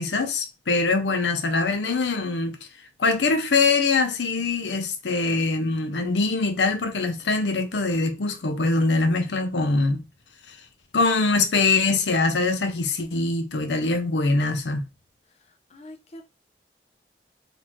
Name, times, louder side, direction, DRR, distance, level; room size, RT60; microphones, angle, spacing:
voice 1, 0.0-2.6 3.0-10.0 10.9-14.8, left 3 dB, 85° left, 0.6 m, -23 dB
voice 2, 5.8-6.1 15.7-16.2, left 1 dB, 35° left, 0.5 m, -45 dB
3.5 x 2.4 x 3.1 m
head